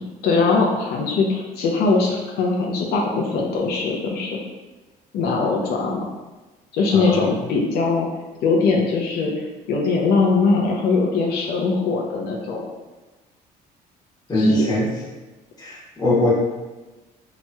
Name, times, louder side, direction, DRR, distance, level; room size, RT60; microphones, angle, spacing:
voice 1, 0.0-4.4 5.1-6.0 6.7-8.1 8.4-9.3 9.7-12.6 14.3-14.6, left 4 dB, 70° left, -1 dB, 0.5 m, -21 dB
voice 2, 6.9-7.3 14.3-14.9 15.6-16.3, left 1 dB, 25° left, -6 dB, 1.1 m, -21 dB
3.0 x 2.7 x 2.2 m, 1.2 s
cardioid pair, 110°, 17 cm